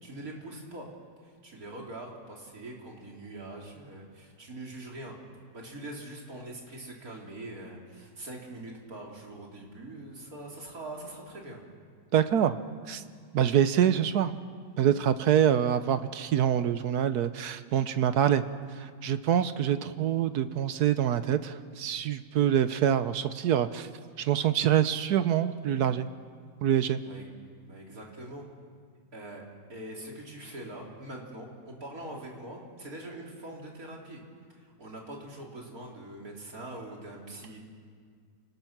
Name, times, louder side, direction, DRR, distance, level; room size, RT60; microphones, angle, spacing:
voice 1, 0.0-0.9 1.2-5.2 5.5-11.6 27.0-27.3 27.7-28.5 29.1-29.4 29.7-34.2 34.5-37.6, right 1 dB, 50° right, -1 dB, 3.7 m, -43 dB
voice 2, 12.1-12.6 12.9-13.0 13.3-14.3 14.8-18.4 18.8-23.9 24.2-26.1 26.6-27.0, right 10 dB, 65° right, 12 dB, 1.2 m, -25 dB
28.0 x 19.5 x 6.0 m, 2.1 s
omnidirectional pair, 1.9 m